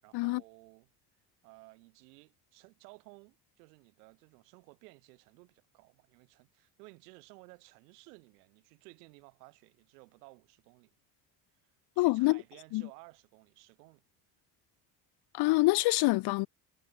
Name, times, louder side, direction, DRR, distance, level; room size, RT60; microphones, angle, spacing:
voice 1, 0.0-0.9 1.4-10.9 11.6-14.0, right 27 dB, 90° right, 6.4 m, -56 dB
voice 2, 12.0-12.4 12.7-12.8 15.3-16.5, left 21 dB, 60° left, 0.5 m, -26 dB
supercardioid pair, 75°, 46 cm